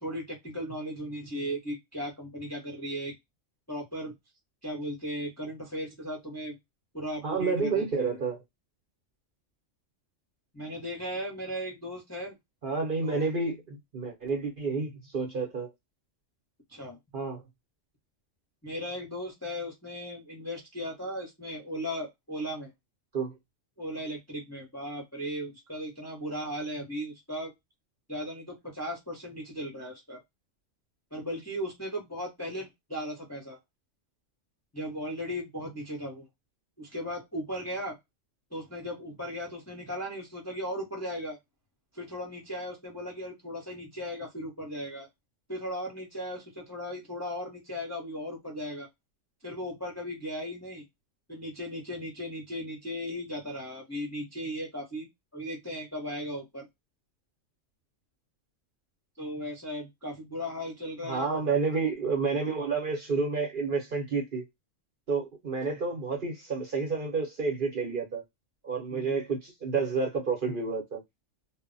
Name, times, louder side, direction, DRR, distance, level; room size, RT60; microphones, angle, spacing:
voice 1, 0.0-3.1 3.7-4.1 4.6-6.6 6.9-8.1 10.5-12.3 13.0-13.3 16.7-17.0 18.6-22.7 23.8-27.5 28.1-30.2 31.1-33.6 34.7-36.3 36.8-38.0 38.5-41.4 41.9-45.1 45.5-48.9 49.4-50.8 51.3-55.1 55.3-56.7 59.2-61.6 65.7-65.8 68.9-69.2, equal, 15° left, 0.6 m, -37 dB
voice 2, 7.2-8.4 12.6-15.7 17.1-17.4 23.1-23.3 61.1-64.5 65.1-68.2 68.6-71.0, right 4 dB, 50° right, 0.8 m, -30 dB
2.1 x 2.0 x 3.7 m
omnidirectional pair, 1.3 m